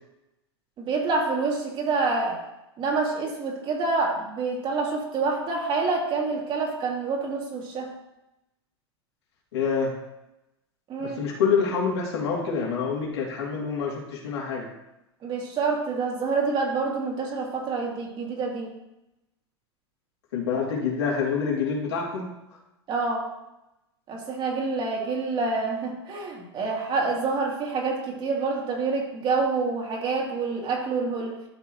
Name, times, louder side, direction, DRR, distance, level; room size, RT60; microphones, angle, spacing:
voice 1, 0.8-2.4 2.8-7.9 10.9-11.2 15.2-18.7 22.9-23.3 24.1-31.3, right 4 dB, 35° right, -1 dB, 2.7 m, -27 dB
voice 2, 9.5-9.9 11.0-14.7 20.3-22.3, left 5 dB, 80° left, -3 dB, 3.1 m, -26 dB
12.5 x 6.3 x 3.2 m, 0.91 s
hypercardioid pair, 110°, 14 cm